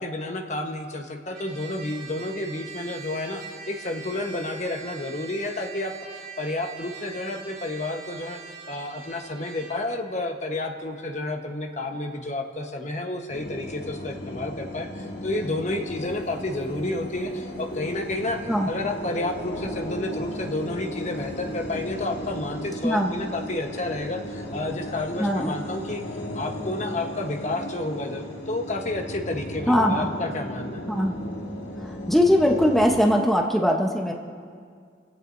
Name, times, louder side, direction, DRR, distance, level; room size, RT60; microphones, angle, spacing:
voice 1, 0.0-8.4 8.7-18.4 18.7-26.0 26.3-30.8, left 2 dB, 40° left, 3 dB, 1.2 m, -30 dB
Trumpet, 1.3-9.9, right 5 dB, 50° right, 4.5 m, -42 dB
sound 1, 13.3-33.0, equal, 60° left, 1.8 m, -35 dB
voice 2, 25.2-25.5 29.7-30.1 30.9-31.2 31.8-34.1, equal, ahead, 0 dB, 1.0 m, -21 dB
29.0 x 16.5 x 2.7 m, 2.1 s
head